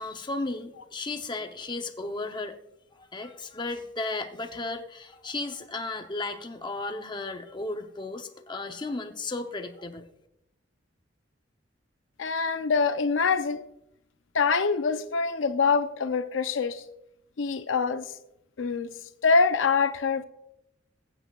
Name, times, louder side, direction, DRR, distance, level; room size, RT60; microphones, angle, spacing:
voice 1, 0.0-2.6 2.9-10.1, left 2 dB, 25° left, 0.7 m, -34 dB
voice 2, 12.2-13.6 14.3-16.8 17.4-18.1 18.6-18.9 19.2-20.2, left 4 dB, 90° left, 0.6 m, -24 dB
21.5 x 8.2 x 2.4 m
head